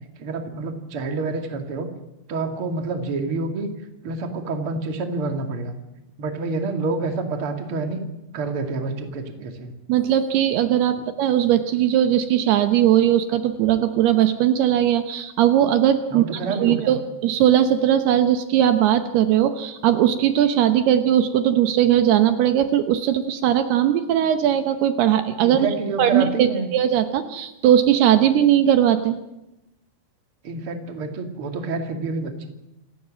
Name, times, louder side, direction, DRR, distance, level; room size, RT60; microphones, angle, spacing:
voice 1, 0.2-1.9 2.3-3.7 4.0-5.7 6.2-8.0 8.3-9.7 16.1-17.0 25.4-26.7 30.4-32.4, right 3 dB, 40° right, 5 dB, 2.6 m, -28 dB
voice 2, 9.9-29.2, right 10 dB, 75° right, 9 dB, 2.9 m, -19 dB
27.5 x 17.0 x 7.6 m, 0.92 s
omnidirectional pair, 4.9 m